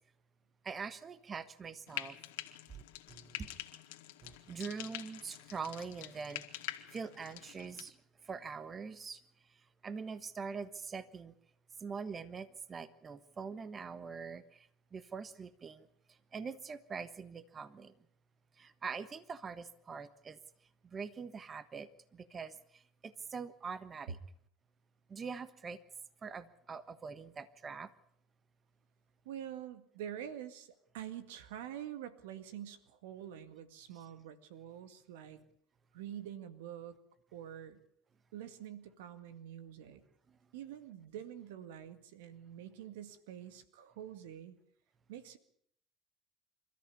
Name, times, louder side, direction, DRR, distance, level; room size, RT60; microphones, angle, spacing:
voice 1, 0.6-2.2 2.7-2.8 3.1-3.5 4.2-11.3 11.8-17.9 18.5-20.4 20.8-24.2 25.1-25.8 26.2-27.9 40.3-40.4, right 5 dB, 35° right, 14 dB, 1.4 m, -44 dB
Frying (food), 1.9-7.9, left 15 dB, 85° left, 1.8 m, -46 dB
voice 2, 29.3-35.4 35.9-37.0 37.3-37.8 38.3-40.0 40.5-44.6 45.1-45.4, right 10 dB, 85° right, 11 dB, 2.0 m, -46 dB
27.0 x 14.0 x 8.6 m, 0.69 s
supercardioid pair, 85°, 0 cm